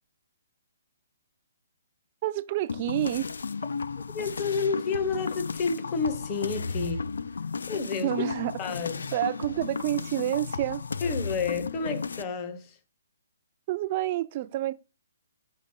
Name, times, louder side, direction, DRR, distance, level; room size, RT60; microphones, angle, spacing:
voice 1, 2.2-3.3 8.0-8.5 9.1-10.8 13.7-14.7, right 14 dB, 30° right, 0.4 m, -28 dB
sound 1, 2.7-12.2, left 5 dB, 85° left, 0.3 m, -34 dB
voice 2, 4.1-7.1 7.7-8.2 8.6-9.1 11.0-12.8, left 5 dB, 20° left, 0.7 m, -30 dB
5.3 x 4.5 x 5.2 m
hypercardioid pair, 165°, 0 cm